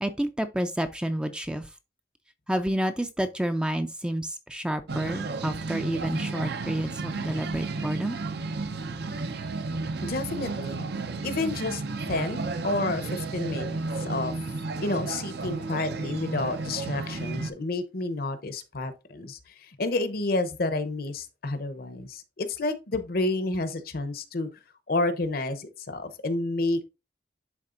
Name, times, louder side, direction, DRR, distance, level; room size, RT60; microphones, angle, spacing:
voice 1, 0.0-1.7 2.5-8.2, right 1 dB, 5° right, 0.4 m, -29 dB
sound 1, 4.9-17.5, right 3 dB, 60° right, 0.6 m, -33 dB
voice 2, 10.0-10.9 11.2-11.8 12.1-14.3 14.8-19.4 19.8-24.5 24.9-26.9, left 2 dB, 55° left, 0.8 m, -30 dB
11.0 x 3.6 x 2.5 m
head